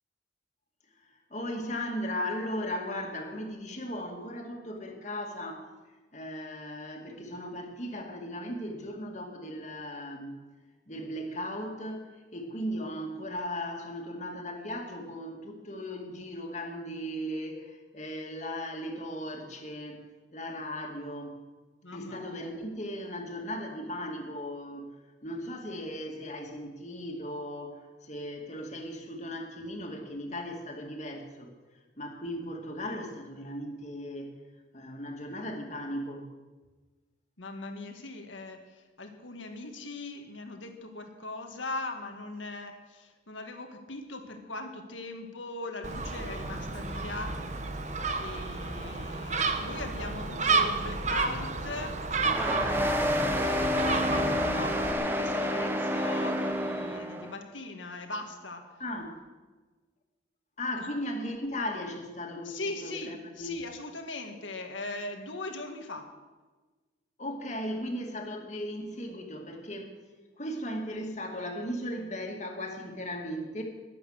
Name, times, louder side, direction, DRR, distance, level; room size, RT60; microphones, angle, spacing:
voice 1, 0.9-5.7 6.1-10.4 10.9-20.0 20.3-21.4 21.9-25.0 25.2-31.5 32.0-34.4 34.7-36.3 58.8-59.2 60.6-63.6 67.2-69.9 70.4-73.6, equal, 40° left, 2 dB, 2.3 m, -37 dB
voice 2, 21.8-22.5 37.4-47.5 48.2-52.2 52.5-58.7 62.4-66.1, left 2 dB, 85° left, 5 dB, 2.0 m, -40 dB
Gull seagull, 45.8-54.9, right 3 dB, 40° right, 1.2 m, -31 dB
sound 1, 52.2-57.3, equal, 10° right, 1.1 m, -29 dB
21.5 x 8.5 x 6.5 m, 1.3 s
head